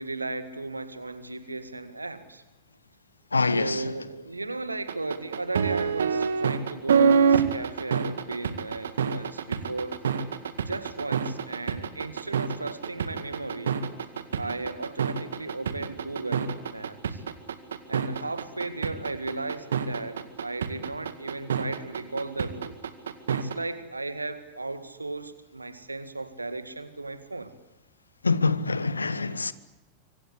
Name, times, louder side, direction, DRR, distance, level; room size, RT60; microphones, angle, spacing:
voice 1, 0.0-2.4 3.5-10.0 10.7-13.8 14.3-17.2 17.9-22.8 23.3-27.5, right 2 dB, 80° right, 2.0 m, -35 dB
voice 2, 3.3-3.8 28.2-29.5, left 3 dB, 80° left, 1.2 m, -25 dB
sound 1, 4.9-23.5, right 6 dB, 65° right, 2.1 m, -26 dB
25.5 x 25.0 x 8.2 m
figure-of-eight pair, 90°, 0 cm